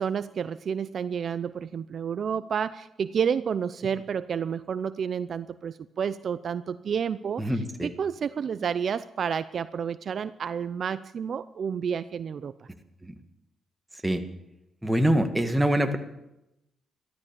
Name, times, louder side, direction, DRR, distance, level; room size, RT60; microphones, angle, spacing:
voice 1, 0.0-7.4 7.8-12.7, right 7 dB, 60° right, 13 dB, 0.6 m, -30 dB
voice 2, 7.4-7.9 13.0-13.1 14.0-14.2 14.8-16.0, right 1 dB, 10° right, 6 dB, 1.8 m, -24 dB
14.0 x 12.5 x 7.0 m, 0.89 s
cardioid pair, 80°, 0 cm